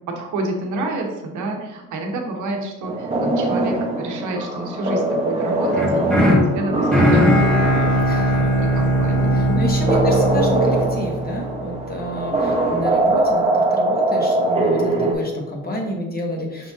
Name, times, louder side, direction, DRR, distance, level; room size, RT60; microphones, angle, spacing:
voice 1, 0.1-10.4, right 1 dB, 80° right, 2 dB, 0.9 m, -29 dB
sound 1, 2.8-15.1, right 2 dB, 20° right, 0.9 m, -22 dB
sound 2, 5.7-11.8, equal, 5° left, 1.2 m, -19 dB
voice 2, 8.0-8.4 9.3-16.7, left 1 dB, 30° left, 0 dB, 1.2 m, -29 dB
5.8 x 3.5 x 2.6 m, 1.0 s
cardioid pair, 90°, 30 cm